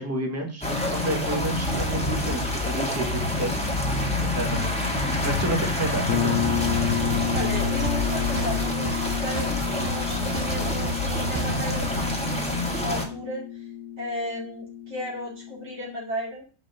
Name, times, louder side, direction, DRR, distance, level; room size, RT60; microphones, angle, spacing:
voice 1, 0.0-3.6 4.3-4.9 5.2-6.4, right 1 dB, 15° right, 1 dB, 1.5 m, -30 dB
sound 1, 0.6-13.1, left 1 dB, 5° left, 1.6 m, -27 dB
voice 2, 3.8-4.3 7.3-13.7 14.0-16.4, equal, 65° right, -4 dB, 3.0 m, -35 dB
sound 2, 6.1-15.8, left 10 dB, 75° left, 0.9 m, -31 dB
sound 3, 6.5-11.8, equal, 35° right, 0.8 m, -32 dB
5.8 x 5.1 x 6.6 m, 0.37 s
omnidirectional pair, 1.2 m